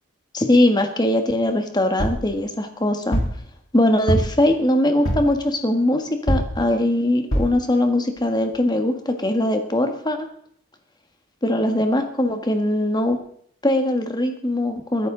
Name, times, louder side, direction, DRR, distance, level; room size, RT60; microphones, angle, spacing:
voice 1, 0.3-3.2 3.7-10.2 11.4-13.2 13.6-15.1, left 1 dB, 20° left, 6 dB, 1.6 m, -21 dB
sound 1, 2.0-2.3 3.1-3.4 4.1-4.5 5.1-5.4 6.3-6.6 7.3-7.6 8.2-8.3 8.5-8.6, equal, 65° left, 3.7 m, -23 dB
21.0 x 11.0 x 3.9 m, 0.64 s
head